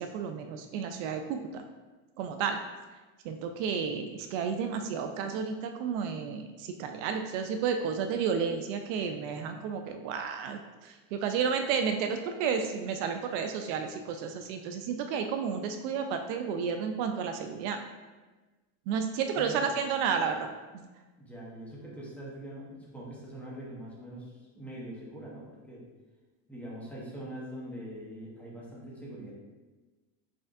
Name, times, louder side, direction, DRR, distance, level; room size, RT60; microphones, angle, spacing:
voice 1, 0.0-1.6 2.2-2.6 3.2-17.8 18.9-20.5 20.7-20.9, right 6 dB, 65° right, 6 dB, 0.5 m, -32 dB
voice 2, 19.4-19.7 21.2-25.9 26.5-29.3, right 1 dB, 5° left, -6 dB, 0.8 m, -43 dB
5.0 x 4.3 x 2.5 m, 1.2 s
cardioid pair, 155°, 38 cm